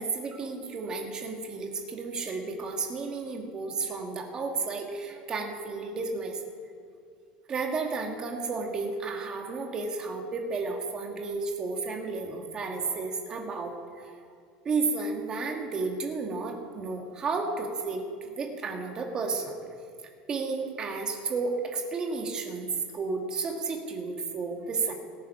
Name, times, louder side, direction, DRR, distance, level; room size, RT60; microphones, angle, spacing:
voice 1, 0.0-6.4 7.5-14.1 14.6-19.6 20.3-24.9, right 4 dB, 25° right, 2 dB, 1.7 m, -32 dB
19.0 x 7.4 x 5.6 m, 2.3 s
cardioid pair, 155°, 3 cm